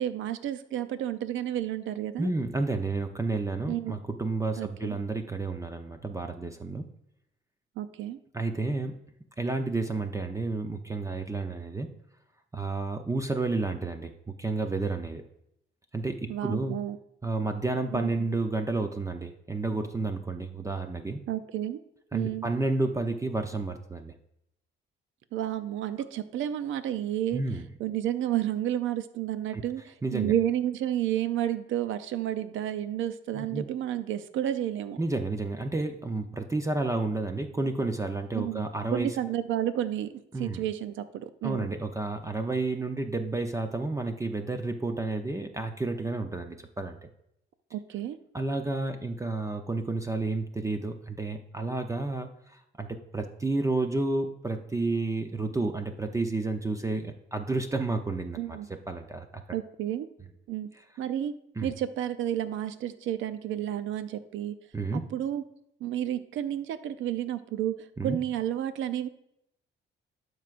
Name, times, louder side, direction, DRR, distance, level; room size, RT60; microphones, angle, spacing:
voice 1, 0.0-2.3 3.7-4.0 4.6-5.0 7.8-8.2 16.3-17.0 17.9-18.1 21.3-21.8 22.1-22.5 25.3-27.4 27.8-35.0 38.3-38.6 38.9-41.7 47.7-48.2 58.4-58.7 59.5-60.1 60.5-60.7 61.0-61.3 61.6-64.6 64.9-65.4 65.8-69.1, right 11 dB, 80° right, 12 dB, 0.6 m, -31 dB
voice 2, 2.2-6.9 8.3-8.9 9.4-11.9 12.5-15.2 15.9-16.8 17.2-21.2 22.1-24.1 27.3-27.6 29.5-29.6 30.0-30.3 33.3-33.7 35.0-39.2 40.3-40.6 41.4-47.0 48.3-58.6 58.9-59.4 61.6-61.7 64.7-65.0 68.0-68.2, right 2 dB, 15° right, 6 dB, 0.7 m, -31 dB
12.5 x 4.7 x 2.5 m, 0.78 s
cardioid pair, 90°, 20 cm